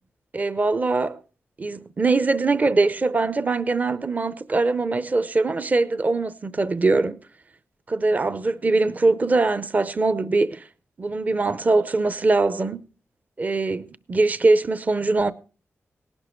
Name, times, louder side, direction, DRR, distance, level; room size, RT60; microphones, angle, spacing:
voice 1, 0.3-1.2 1.6-7.2 7.9-10.7 11.0-12.8 13.4-15.3, right 3 dB, 35° right, 0.6 m, -22 dB
18.5 x 11.5 x 3.1 m
cardioid pair, 85°, 5 cm